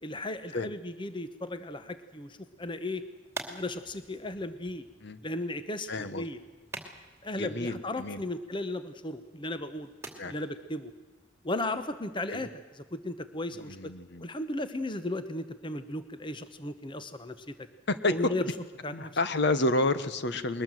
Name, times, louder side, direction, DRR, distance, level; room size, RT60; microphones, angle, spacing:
voice 1, 0.0-3.1 3.5-4.9 5.2-6.4 7.2-9.9 10.3-10.9 11.4-13.9 14.2-17.7 18.1-18.5 18.8-19.1, left 2 dB, 25° left, 11 dB, 1.0 m, -35 dB
sound 1, 2.5-12.2, right 3 dB, 15° right, 2.7 m, -49 dB
voice 2, 5.9-6.3 7.4-8.2 10.2-10.3 12.3-12.4 13.6-14.3 17.9-18.3 18.9-20.6, left 2 dB, 55° left, 12 dB, 1.1 m, -29 dB
22.0 x 20.0 x 7.8 m, 1.3 s
head